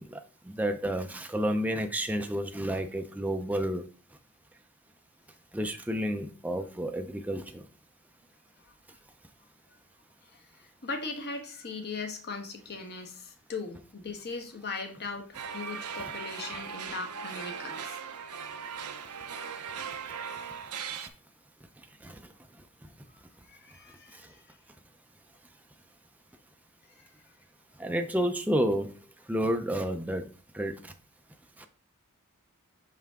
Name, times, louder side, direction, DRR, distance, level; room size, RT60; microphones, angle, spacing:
voice 1, 0.5-3.8 5.5-7.6 20.9-21.0 22.0-22.2 27.8-28.9 29.3-30.2 30.5-30.9 31.6-31.7, equal, 5° right, 5 dB, 0.5 m, -30 dB
voice 2, 10.8-18.0 23.5-24.3 27.0-27.1, left 4 dB, 50° left, 4 dB, 1.3 m, -39 dB
sound 1, 15.3-21.1, right 7 dB, 85° right, 0.8 m, -39 dB
5.6 x 5.6 x 3.5 m, 0.36 s
head